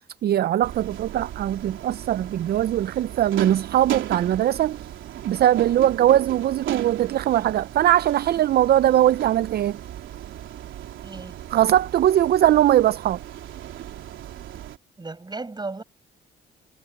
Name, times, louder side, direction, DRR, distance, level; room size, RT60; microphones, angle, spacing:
voice 1, 0.2-4.8 5.2-9.8 11.5-13.2, right 12 dB, 55° right, 0.4 m, -20 dB
sound 1, 0.6-14.8, right 12 dB, 80° right, 3.5 m, -36 dB
voice 2, 11.0-11.4 15.0-15.8, right 3 dB, 20° right, 6.1 m, -34 dB
cardioid pair, 90°, 20 cm